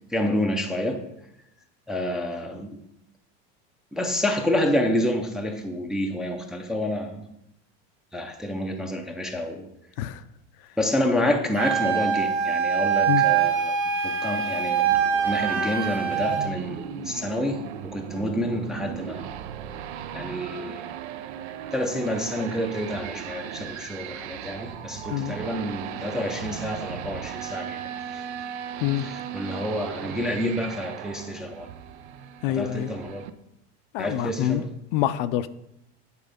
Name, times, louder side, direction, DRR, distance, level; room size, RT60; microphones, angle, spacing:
voice 1, 0.1-1.0 1.9-2.8 3.9-7.3 8.1-9.7 10.8-13.8 14.0-15.0 15.2-19.3 20.1-20.8 21.7-28.2 29.0-31.7 32.5-33.3 34.0-34.7, left 1 dB, ahead, 2 dB, 0.4 m, -28 dB
Wind instrument woodwind instrument, 11.6-16.5, right 7 dB, 40° right, 1.2 m, -24 dB
sound 1, 14.9-33.3, right 9 dB, 90° right, 0.7 m, -37 dB
voice 2, 32.4-32.9 33.9-34.6 34.9-35.5, left 12 dB, 60° left, 13 dB, 0.5 m, -26 dB
9.6 x 4.4 x 5.0 m, 0.82 s
supercardioid pair, 150°, 32 cm